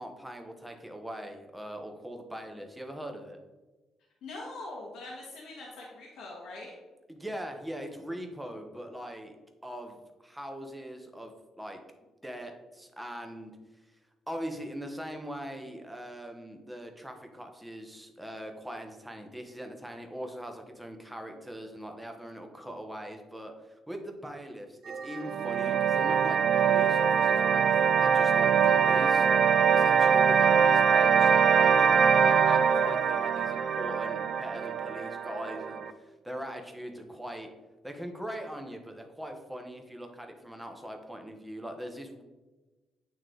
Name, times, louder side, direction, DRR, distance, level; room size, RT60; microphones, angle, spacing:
voice 1, 0.0-3.4 7.1-9.4 9.6-10.0 10.2-11.8 12.2-13.5 14.3-24.8 25.0-29.3 29.7-37.5 37.8-42.2, equal, 5° right, 4 dB, 1.0 m, -41 dB
voice 2, 4.2-6.7, left 2 dB, 75° left, -3 dB, 1.3 m, -42 dB
sound 1, 24.9-35.9, right 7 dB, 65° right, 0.4 m, -23 dB
8.7 x 3.1 x 3.9 m, 1.2 s
cardioid pair, 90°, 0 cm